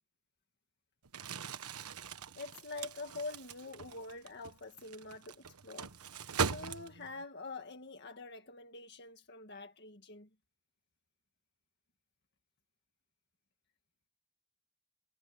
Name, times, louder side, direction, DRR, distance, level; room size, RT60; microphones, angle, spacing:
Crumpling crinkling, 1.0-7.2, right 6 dB, 85° right, 1.3 m, -40 dB
voice 1, 2.4-10.3, left 3 dB, 50° left, 1.8 m, -46 dB
head